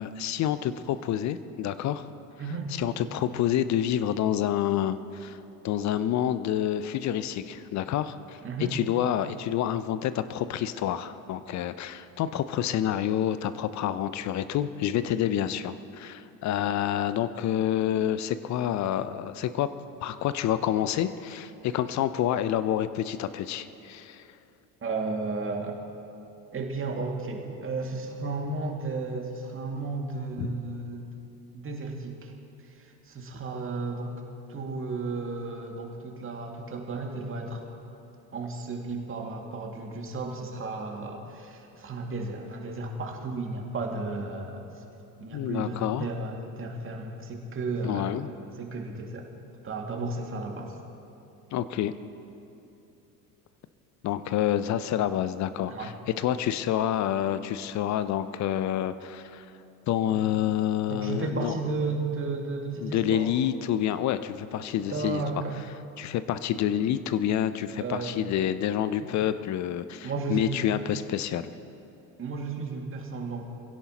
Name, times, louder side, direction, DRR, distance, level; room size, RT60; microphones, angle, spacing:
voice 1, 0.0-2.0 2.8-5.4 5.6-8.4 8.7-19.7 20.0-24.3 30.4-30.5 45.3-46.1 47.8-48.3 51.5-51.9 54.0-59.5 59.9-61.5 62.8-65.2 66.0-71.5, left 11 dB, 35° left, 13 dB, 0.7 m, -28 dB
voice 2, 2.4-2.7 8.4-8.7 24.8-25.8 26.5-31.2 31.5-32.3 32.6-34.2 34.5-37.7 38.3-44.8 45.2-48.2 48.6-49.3 49.6-50.8 55.7-55.9 60.1-60.2 60.9-63.3 64.8-65.6 67.8-68.3 69.0-69.1 70.0-70.6 72.2-73.4, right 3 dB, 25° right, 1 dB, 2.3 m, -33 dB
23.5 x 16.5 x 3.0 m, 2.9 s
figure-of-eight pair, 65°, 48 cm